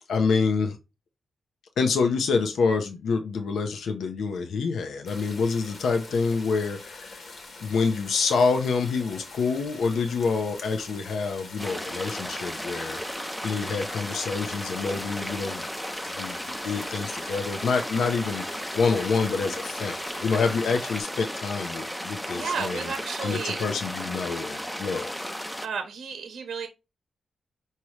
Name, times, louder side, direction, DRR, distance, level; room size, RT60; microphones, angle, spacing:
voice 1, 0.1-0.8 1.8-7.2 7.6-15.6 16.1-22.8 23.2-25.1, left 4 dB, 80° left, 0.6 m, -27 dB
sound 1, 5.1-21.0, left 3 dB, 55° left, 1.1 m, -44 dB
sound 2, 11.6-25.7, equal, 5° left, 0.4 m, -35 dB
voice 2, 22.3-23.6 25.6-26.7, right 5 dB, 75° right, 0.8 m, -32 dB
4.7 x 2.8 x 3.1 m
cardioid pair, 90°, 0 cm